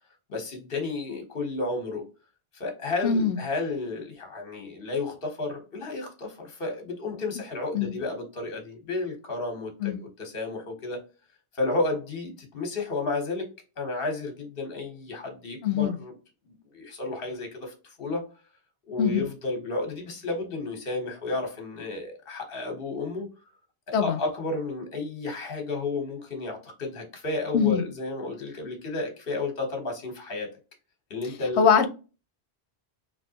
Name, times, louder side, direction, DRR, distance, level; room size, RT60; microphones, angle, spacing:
voice 1, 0.3-2.0 2.5-11.0 11.5-13.5 13.8-16.1 16.5-18.3 18.9-23.3 24.0-30.5 31.1-31.7, left 3 dB, 60° left, 4 dB, 1.2 m, -32 dB
voice 2, 3.0-3.4 7.7-8.0 9.8-10.0 15.6-16.0 19.0-19.3 23.9-24.2 27.5-27.8 31.6-31.9, left 7 dB, 85° left, 9 dB, 0.9 m, -22 dB
3.2 x 2.9 x 2.7 m, 0.32 s
omnidirectional pair, 1.1 m